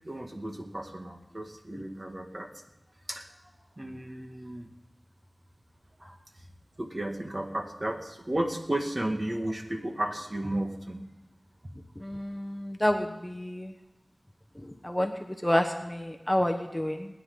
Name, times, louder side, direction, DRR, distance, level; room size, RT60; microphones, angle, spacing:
voice 1, 0.0-2.5 3.1-3.3 3.8-4.7 6.0-6.2 6.8-11.1, right 1 dB, 35° right, 2 dB, 1.9 m, -33 dB
voice 2, 12.0-13.7 14.8-15.1 15.4-17.1, left 1 dB, 10° left, 4 dB, 1.1 m, -28 dB
28.0 x 10.0 x 3.9 m, 1.0 s
wide cardioid pair, 65°, 0 cm